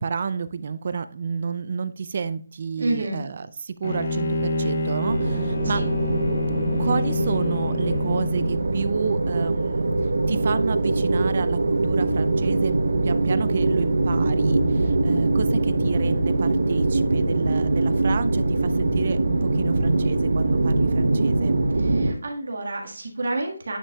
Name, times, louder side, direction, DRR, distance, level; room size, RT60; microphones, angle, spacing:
voice 1, 0.0-5.8 6.8-9.9 10.3-12.7 13.0-21.6, right 5 dB, 35° right, 14 dB, 0.4 m, -30 dB
voice 2, 2.8-3.2 5.7-5.9 21.8-23.8, right 2 dB, 60° right, 1 dB, 1.6 m, -29 dB
Bowed string instrument, 3.8-8.6, left 3 dB, 40° left, 0.8 m, -27 dB
sound 1, 5.0-22.1, right 2 dB, 75° right, 0.9 m, -23 dB
9.5 x 6.0 x 2.3 m, 0.43 s
hypercardioid pair, 175°, 0 cm